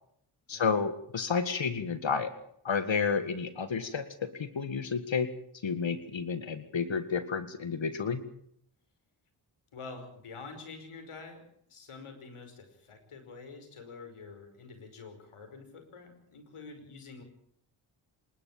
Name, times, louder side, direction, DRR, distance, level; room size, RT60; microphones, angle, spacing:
voice 1, 0.5-2.3 2.6-5.3 5.6-8.2, left 5 dB, 65° left, 11 dB, 2.0 m, -31 dB
voice 2, 9.7-11.4 11.7-17.2, left 4 dB, 80° left, 6 dB, 5.5 m, -47 dB
26.5 x 12.5 x 8.9 m, 0.70 s
cardioid pair, 55°, 49 cm